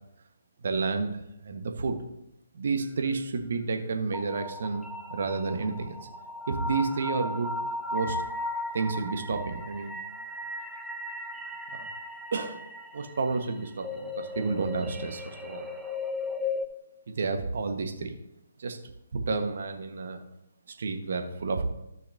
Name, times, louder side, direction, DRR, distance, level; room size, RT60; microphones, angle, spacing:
voice 1, 0.6-1.2 1.4-2.0 2.5-4.8 5.1-6.0 6.5-7.5 7.9-8.2 8.7-9.9 11.7-11.9 12.3-12.6 12.9-15.7 17.1-18.2 18.6-18.8 19.1-20.2 20.8-21.7, right 4 dB, 60° right, 5 dB, 1.2 m, -30 dB
sound 1, 4.1-16.7, left 2 dB, 5° right, 0.7 m, -36 dB
13.5 x 5.7 x 2.6 m, 0.85 s
figure-of-eight pair, 140°, 0 cm